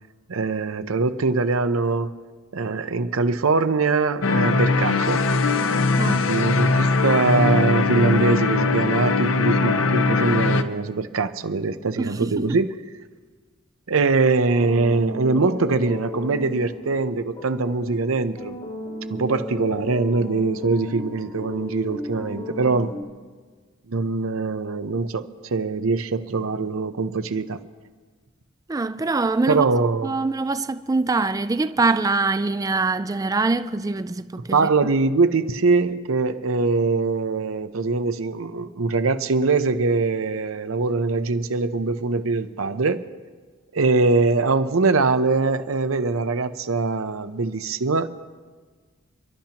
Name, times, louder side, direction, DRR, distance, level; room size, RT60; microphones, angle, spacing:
voice 1, 0.3-2.1 2.5-5.3 6.1-12.7 13.9-18.6 19.1-22.9 23.9-27.6 29.5-30.2 34.5-43.0 43.7-48.1, right 3 dB, 85° right, 0.7 m, -22 dB
sound 1, 4.2-10.6, left 3 dB, 70° left, 0.6 m, -20 dB
voice 2, 6.0-6.3 12.0-12.6 28.7-29.7 30.0-34.6, right 3 dB, 15° right, 0.3 m, -24 dB
sound 2, 14.5-23.0, left 1 dB, 30° left, 1.3 m, -35 dB
30.0 x 12.0 x 2.9 m
head